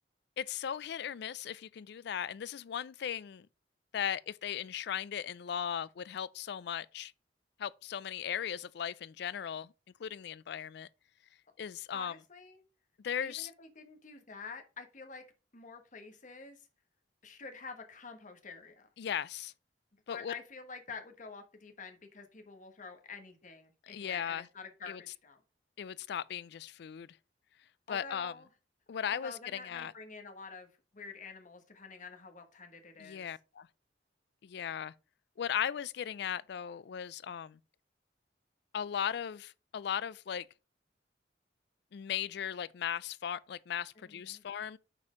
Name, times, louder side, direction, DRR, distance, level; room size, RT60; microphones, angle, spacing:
voice 1, 0.4-3.5 3.9-7.1 7.6-9.7 10.0-10.9 11.6-12.1 13.0-13.5 19.0-19.5 20.1-20.3 23.8-24.5 24.9-25.0 25.8-27.2 27.9-28.3 28.9-29.9 33.0-33.7 34.4-34.9 35.4-37.6 38.7-40.5 41.9-44.8, left 8 dB, 65° left, 0.4 m, -37 dB
voice 2, 11.9-12.6 13.2-15.2 15.5-16.6 17.2-18.9 20.1-25.4 27.9-28.5 29.2-30.7 30.9-33.3 44.1-44.4, left 4 dB, 45° left, 1.3 m, -48 dB
6.0 x 4.4 x 4.9 m
head